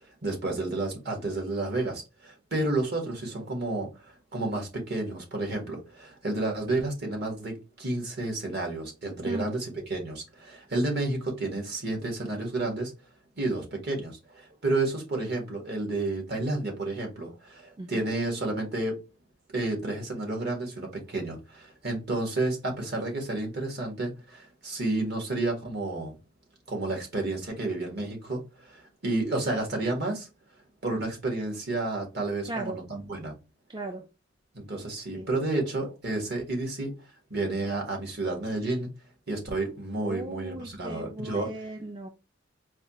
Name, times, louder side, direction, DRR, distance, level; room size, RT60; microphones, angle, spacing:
voice 1, 0.2-12.9 13.4-19.0 19.5-26.1 26.7-30.3 30.8-33.3 34.5-36.9 37.3-38.9 39.3-41.5, right 2 dB, 55° right, 1.6 m, -31 dB
voice 2, 17.8-18.1 32.5-32.8 33.7-34.1 35.1-35.3 40.0-42.1, right 2 dB, 25° right, 0.4 m, -37 dB
4.6 x 2.4 x 3.0 m
head